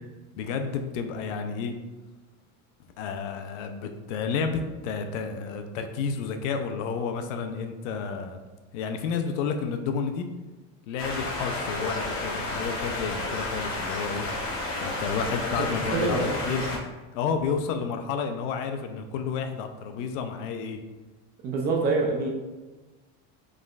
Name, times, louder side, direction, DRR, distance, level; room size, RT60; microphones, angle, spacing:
voice 1, 0.4-1.7 3.0-8.4 8.7-10.3 10.9-14.3 14.8-16.8 17.1-20.8, left 5 dB, 75° left, 6 dB, 0.6 m, -31 dB
sound 1, 11.0-16.8, left 2 dB, 35° left, 0.8 m, -31 dB
voice 2, 15.6-16.6 21.4-22.3, right 3 dB, 30° right, 0 dB, 0.3 m, -26 dB
5.2 x 3.7 x 2.3 m, 1.2 s
cardioid pair, 170°, 37 cm